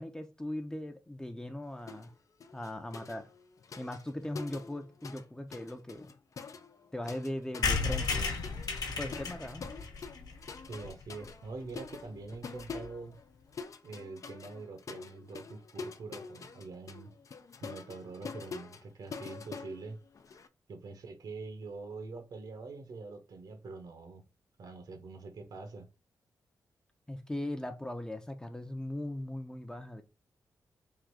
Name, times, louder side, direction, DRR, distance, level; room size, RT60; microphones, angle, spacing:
voice 1, 0.0-2.1 2.5-3.3 3.8-6.1 6.9-8.2 8.9-9.7 27.1-30.0, left 1 dB, 10° left, 0.6 m, -39 dB
sound 1, 1.9-2.1 2.4-5.2 5.5-20.5, left 5 dB, 50° left, 0.5 m, -46 dB
sound 2, 7.6-11.3 11.7-11.8 12.0-12.1 12.3-12.4 12.6-12.9, left 4 dB, 70° left, 1.0 m, -34 dB
voice 2, 10.7-13.2 13.8-17.1 17.6-20.0 20.7-24.2 24.6-25.9, right 3 dB, 70° right, 1.2 m, -45 dB
3.7 x 2.6 x 4.6 m
cardioid pair, 95°, 7 cm